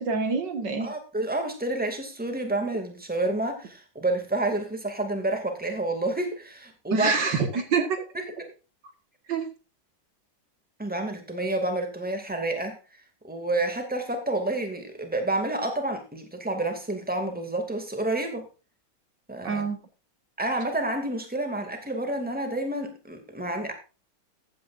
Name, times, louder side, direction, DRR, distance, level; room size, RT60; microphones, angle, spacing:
voice 1, 0.0-0.9 6.9-8.0 9.3-9.5 19.4-19.8, right 5 dB, 70° right, 7 dB, 2.2 m, -26 dB
voice 2, 0.8-7.1 7.7-7.9 8.1-8.3 10.8-12.8 13.2-18.4 19.3-19.6 20.4-23.7, right 2 dB, 5° right, 4 dB, 2.3 m, -29 dB
14.5 x 9.5 x 2.5 m, 0.33 s
omnidirectional pair, 2.0 m